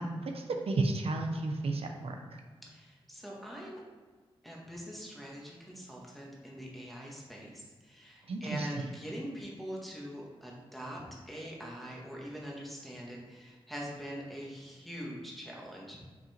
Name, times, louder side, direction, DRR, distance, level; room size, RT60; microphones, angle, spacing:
voice 1, 0.0-2.4 8.3-8.7, right 2 dB, 75° right, 3 dB, 0.7 m, -33 dB
voice 2, 2.7-3.8 4.4-16.0, equal, ahead, -3 dB, 1.6 m, -43 dB
5.8 x 5.2 x 4.4 m, 1.5 s
wide cardioid pair, 135°, 10 cm